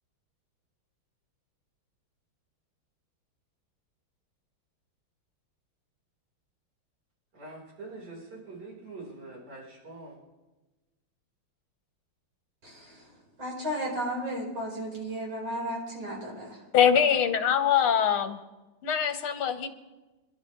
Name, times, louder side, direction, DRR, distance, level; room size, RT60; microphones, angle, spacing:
voice 1, 7.4-10.1, right 3 dB, 50° right, -4 dB, 4.8 m, -44 dB
voice 2, 12.6-13.0 13.4-16.6, equal, 65° right, -3 dB, 5.4 m, -34 dB
voice 3, 16.7-18.4 18.8-19.7, left 8 dB, 80° left, 8 dB, 2.0 m, -23 dB
26.5 x 12.0 x 3.2 m, 1.1 s
omnidirectional pair, 2.3 m